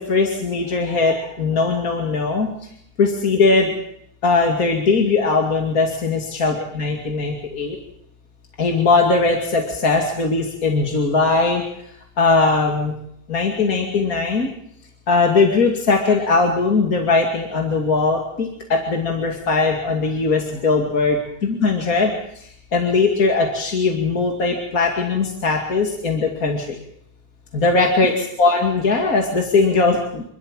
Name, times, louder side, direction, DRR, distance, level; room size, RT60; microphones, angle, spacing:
voice 1, 0.0-2.5 3.0-3.7 4.2-7.8 8.6-11.6 12.2-12.9 13.3-14.5 15.1-22.1 22.7-26.8 27.5-30.2, left 3 dB, 60° left, 1 dB, 2.9 m, -19 dB
26.5 x 13.0 x 9.0 m, 0.72 s
omnidirectional pair, 1.8 m